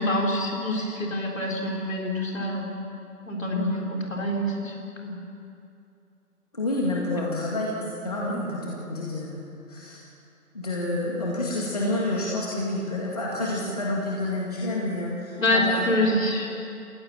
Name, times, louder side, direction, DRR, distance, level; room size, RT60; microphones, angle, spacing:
voice 1, 0.0-2.7 3.3-4.7 5.0-5.2 7.2-7.3 8.3-8.4 15.4-16.5, left 1 dB, 55° left, -1 dB, 4.0 m, -26 dB
voice 2, 6.5-10.0 10.5-15.8, left 1 dB, 25° left, -4 dB, 1.9 m, -29 dB
29.5 x 15.5 x 7.5 m, 2.6 s
figure-of-eight pair, 165°, 46 cm